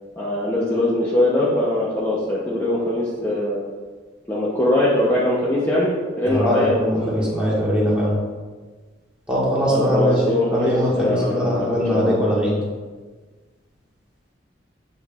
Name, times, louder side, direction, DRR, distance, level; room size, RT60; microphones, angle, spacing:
voice 1, 0.2-3.6 4.3-7.5 9.7-12.2, left 1 dB, 10° left, -7 dB, 0.8 m, -22 dB
voice 2, 6.2-8.2 9.3-10.2 10.5-12.5, equal, 5° right, -7 dB, 1.6 m, -21 dB
8.5 x 5.2 x 2.5 m, 1.4 s
head